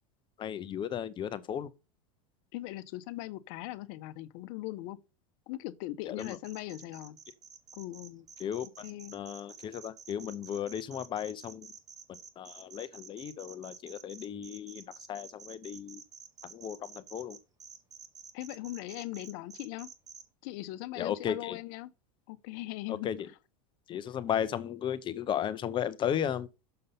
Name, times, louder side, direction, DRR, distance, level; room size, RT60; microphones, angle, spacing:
voice 1, 0.4-1.7 6.1-6.4 8.4-8.7 9.1-11.7 12.4-16.0 16.5-17.4 21.0-21.6 22.9-23.3 23.9-26.5, left 9 dB, 25° left, 0.6 m, -35 dB
voice 2, 2.5-5.0 5.5-7.2 7.7-8.3 8.8-9.2 18.3-19.9 20.4-21.9 22.3-23.1, left 17 dB, 55° left, 0.9 m, -40 dB
sound 1, 6.2-20.2, right 6 dB, 20° right, 1.0 m, -50 dB
6.7 x 5.4 x 5.4 m
supercardioid pair, 130°, 18 cm